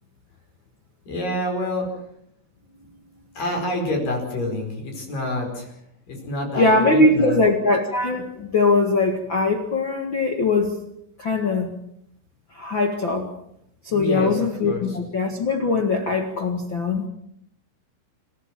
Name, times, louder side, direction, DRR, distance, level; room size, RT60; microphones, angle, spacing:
voice 1, 1.1-1.9 3.3-5.8 6.1-7.4 13.9-15.0, left 1 dB, 45° left, 2 dB, 6.3 m, -27 dB
voice 2, 6.6-10.8 11.2-11.7 12.5-13.3 13.8-17.1, left 3 dB, 60° left, 4 dB, 1.2 m, -21 dB
28.0 x 14.5 x 7.5 m, 0.74 s
omnidirectional pair, 5.6 m